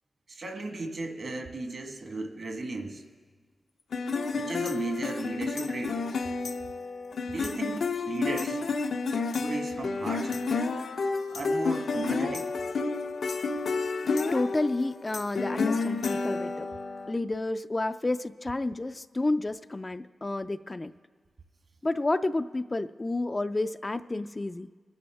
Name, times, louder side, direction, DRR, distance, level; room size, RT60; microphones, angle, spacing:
voice 1, 0.3-3.0 4.3-6.1 7.2-8.6 9.4-10.4 11.3-12.5, right 3 dB, 60° right, 4 dB, 1.4 m, -36 dB
sound 1, 3.9-17.1, left 4 dB, 80° left, 0.6 m, -30 dB
voice 2, 14.3-16.7 17.1-20.9 21.8-24.7, left 2 dB, 25° left, 11 dB, 0.3 m, -30 dB
23.5 x 9.7 x 3.5 m, 1.5 s
wide cardioid pair, 100°, 0 cm